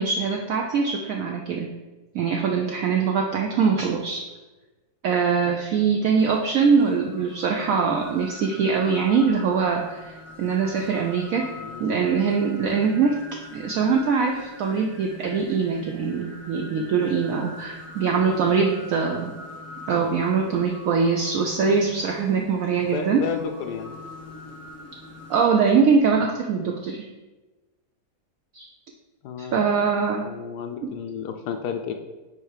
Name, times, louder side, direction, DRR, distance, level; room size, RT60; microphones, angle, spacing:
voice 1, 0.0-1.7 2.1-4.2 5.0-11.5 11.8-13.2 13.5-19.3 19.9-23.2 25.3-27.0 28.5-28.7 29.4-30.3 30.8-30.9, right 5 dB, 70° right, 2 dB, 0.9 m, -22 dB
High Mountain, 6.2-25.4, left 2 dB, 20° left, 0.5 m, -43 dB
voice 2, 11.5-11.9 18.1-18.5 22.9-24.0 29.2-29.6 30.2-31.9, left 7 dB, 75° left, 5 dB, 1.1 m, -32 dB
5.5 x 4.5 x 4.9 m, 1.2 s
omnidirectional pair, 1.8 m